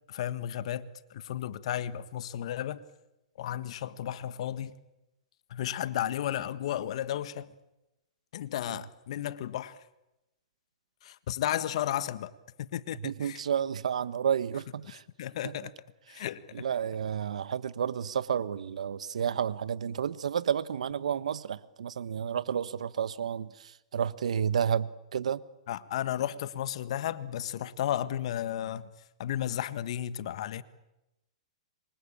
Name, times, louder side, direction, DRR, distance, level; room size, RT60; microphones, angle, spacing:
voice 1, 0.1-2.8 3.4-4.7 5.5-7.5 8.3-9.8 11.0-12.3 12.6-13.4 15.2-15.7 16.1-16.6 25.7-28.9 29.2-30.6, left 11 dB, 60° left, 1.5 m, -33 dB
voice 2, 13.0-15.0 15.4-15.5 16.1-16.2 16.5-25.4, right 8 dB, 85° right, 1.2 m, -31 dB
26.5 x 24.5 x 8.8 m
hypercardioid pair, 140°, 4 cm